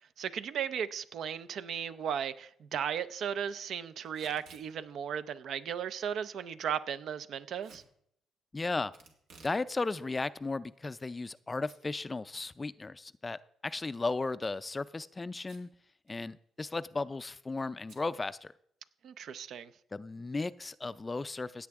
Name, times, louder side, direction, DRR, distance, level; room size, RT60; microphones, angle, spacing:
voice 1, 0.2-7.8 19.0-19.7, right 8 dB, 70° right, 0.6 m, -36 dB
Packing tape duct tape / Tearing, 4.0-4.7 7.6-7.9 8.9-9.6 10.0-10.1 10.8-11.4 11.7-11.8 12.2-12.3 14.2-14.5 15.4-15.8 16.1-16.2 16.4-16.8 17.9-18.1, right 4 dB, 90° right, 2.0 m, -57 dB
voice 2, 8.5-8.9 9.4-15.7 16.1-18.5 19.9-21.7, left 3 dB, 25° left, 0.4 m, -35 dB
16.5 x 8.6 x 3.6 m
cardioid pair, 90°, 0 cm